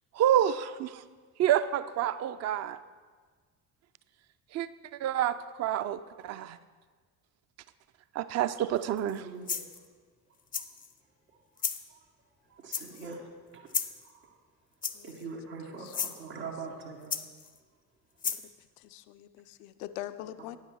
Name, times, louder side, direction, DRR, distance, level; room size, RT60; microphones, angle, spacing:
voice 1, 0.2-1.0 1.4-2.8 4.5-4.7 5.0-6.6 8.2-9.2, right 11 dB, 35° right, 14 dB, 0.4 m, -28 dB
voice 2, 8.8-9.7 11.3-11.4 11.9-12.0 12.5-13.2 13.5-13.7 14.0-14.4 15.0-17.2, right 4 dB, 85° right, -3 dB, 1.1 m, -43 dB
sound 1, 9.0-9.2 9.5-9.9 10.5-10.9 11.6-11.8 12.7-13.1 13.7-14.0 14.8-15.2 15.9-16.2 17.1-17.6 18.2-18.5, left 6 dB, 20° left, 0.5 m, -33 dB
voice 3, 18.8-20.6, left 13 dB, 70° left, 13 dB, 0.6 m, -43 dB
9.6 x 7.5 x 4.4 m, 1.5 s
figure-of-eight pair, 50°, 48 cm